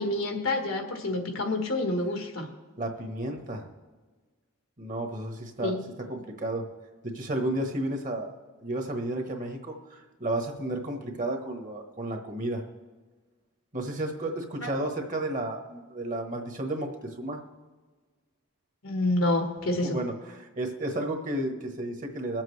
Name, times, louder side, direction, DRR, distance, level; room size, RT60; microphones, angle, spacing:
voice 1, 0.0-2.5 5.6-5.9 14.6-14.7 18.8-20.0, left 2 dB, 80° left, 3 dB, 1.5 m, -28 dB
voice 2, 2.8-3.7 4.8-5.8 6.1-6.6 7.0-12.6 13.7-17.4 19.8-22.4, right 1 dB, 40° right, 4 dB, 1.2 m, -32 dB
22.0 x 7.5 x 3.3 m, 1.3 s
head